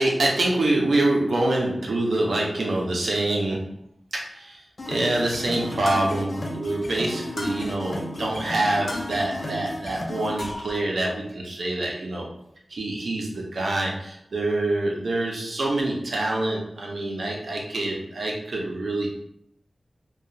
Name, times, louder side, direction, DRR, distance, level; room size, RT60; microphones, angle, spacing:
voice 1, 0.0-3.7 4.1-4.6 4.9-12.3 12.7-19.1, right 2 dB, 80° right, -1 dB, 0.6 m, -25 dB
sound 1, 4.8-10.7, left 1 dB, 60° left, 0.5 m, -34 dB
2.8 x 2.3 x 2.6 m, 0.71 s
wide cardioid pair, 85°, 0 cm